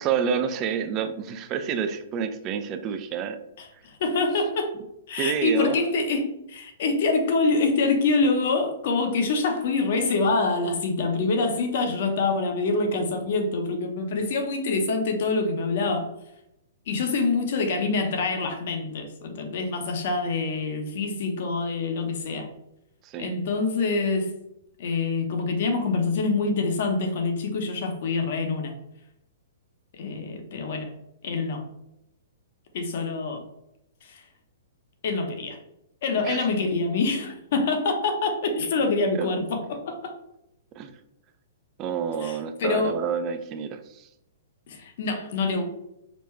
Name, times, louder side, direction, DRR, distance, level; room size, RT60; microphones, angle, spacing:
voice 1, 0.0-3.4 5.1-5.8 23.0-23.3 36.2-36.4 39.2-39.3 40.8-40.9 41.8-44.1, right 7 dB, 25° right, 9 dB, 0.4 m, -28 dB
voice 2, 3.6-4.7 5.1-16.1 16.9-22.5 23.2-24.4 24.8-28.7 29.9-30.9 31.2-31.7 32.7-33.4 34.0-34.2 35.0-35.6 36.0-40.1 42.2-43.0 44.7-45.7, left 3 dB, 55° left, 5 dB, 0.8 m, -26 dB
5.1 x 2.2 x 3.2 m, 0.84 s
hypercardioid pair, 155°, 0 cm